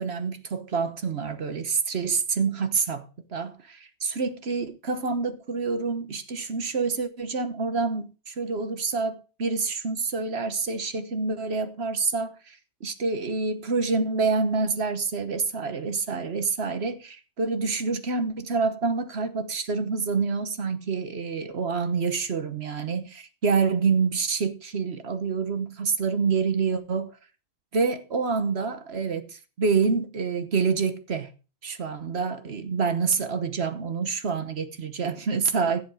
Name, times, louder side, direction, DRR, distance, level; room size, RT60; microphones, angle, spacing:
voice 1, 0.0-27.1 27.7-31.3 31.6-35.8, right 4 dB, 65° right, 1.4 m, -27 dB
16.0 x 7.1 x 4.9 m
omnidirectional pair, 1.1 m